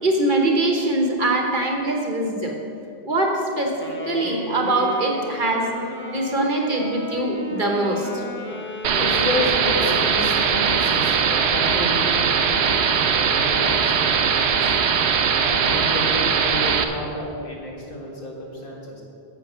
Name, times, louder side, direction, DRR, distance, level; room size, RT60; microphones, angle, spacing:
voice 1, 0.0-2.6 3.0-3.7 4.0-5.7 6.1-8.2, right 2 dB, 50° right, 1 dB, 1.3 m, -22 dB
Wind instrument woodwind instrument, 3.8-10.7, left 1 dB, 10° left, 1.0 m, -34 dB
sound 1, 8.8-16.8, right 6 dB, 90° right, 1.0 m, -20 dB
voice 2, 9.0-14.7 15.4-19.0, left 1 dB, 55° left, -2 dB, 1.9 m, -30 dB
9.0 x 7.5 x 6.2 m, 2.7 s
omnidirectional pair, 1.1 m